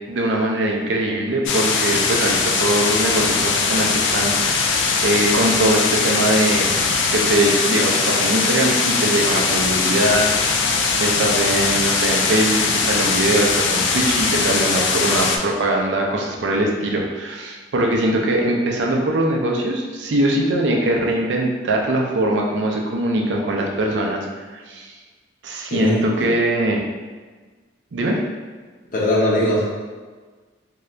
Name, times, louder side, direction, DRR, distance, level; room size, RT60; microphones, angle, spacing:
voice 1, 0.1-6.8 7.1-24.3 24.5-24.9 25.4-26.8 27.9-28.2, right 1 dB, 70° right, 0 dB, 0.5 m, -21 dB
sound 1, 1.5-15.4, left 4 dB, 75° left, 0.3 m, -20 dB
voice 2, 25.7-26.3 28.9-29.6, left 1 dB, 45° left, -5 dB, 0.8 m, -20 dB
2.7 x 2.4 x 3.2 m, 1.4 s
head